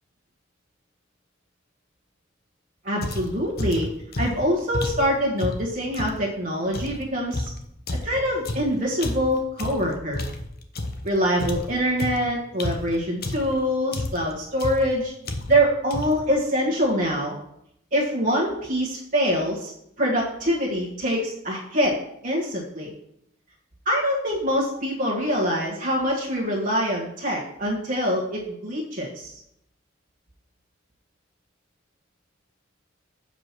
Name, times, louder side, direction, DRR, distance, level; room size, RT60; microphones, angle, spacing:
voice 1, 2.8-3.9 4.2-7.5 8.0-10.2 11.0-15.1 15.5-17.3 17.9-19.7 20.0-22.9 23.8-29.3, equal, 40° right, -3 dB, 1.5 m, -24 dB
sound 1, 3.0-6.2 6.7-11.1 11.4-13.6 13.9-14.3 14.6-14.9 15.2-15.7 15.9-16.3, left 2 dB, 50° left, 0.9 m, -31 dB
7.4 x 5.0 x 6.0 m, 0.76 s
head